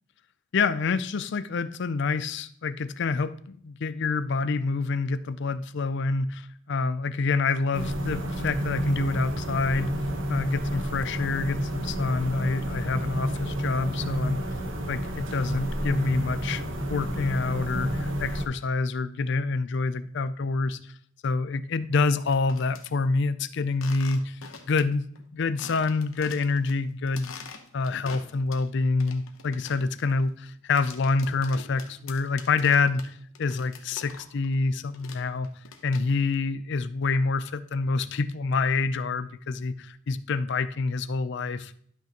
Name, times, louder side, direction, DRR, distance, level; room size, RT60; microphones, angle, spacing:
voice 1, 0.5-9.9 10.3-14.4 14.9-20.9 21.2-24.4 24.7-25.1 25.3-27.5 27.7-35.5 35.8-41.7, left 4 dB, 55° left, 14 dB, 0.4 m, -27 dB
sound 1, 7.7-18.4, equal, 65° right, 1.1 m, -30 dB
sound 2, 22.2-22.8 23.7-24.8 25.2-25.3 25.6-26.7 27.1-28.7 29.0-34.5 34.7-36.3, left 5 dB, 75° left, 0.9 m, -45 dB
12.0 x 5.7 x 2.9 m, 0.62 s
head